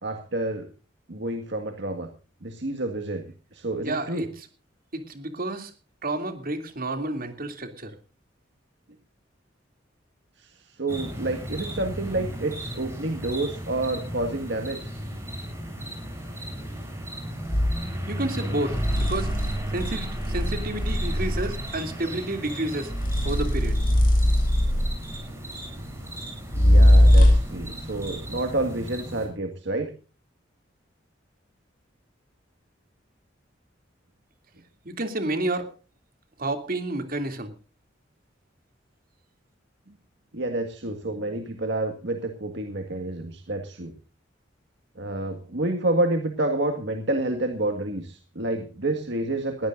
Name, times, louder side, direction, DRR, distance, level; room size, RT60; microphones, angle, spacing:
voice 1, 0.0-0.7 1.1-2.1 2.4-4.3 10.4-14.9 26.6-29.9 40.3-43.9 45.0-49.7, right 2 dB, 65° right, 5 dB, 1.8 m, -29 dB
voice 2, 3.8-4.3 4.9-5.7 6.0-7.9 18.1-19.3 19.7-22.9 23.2-23.7 34.8-35.7 36.4-37.5, right 1 dB, 50° right, 8 dB, 2.7 m, -30 dB
sound 1, 10.9-29.3, right 1 dB, 15° right, 7.5 m, -35 dB
sound 2, 17.5-17.8 18.7-21.7 22.9-25.2 26.5-27.6, equal, 50° left, 6.0 m, -20 dB
21.5 x 15.5 x 2.6 m, 0.34 s
head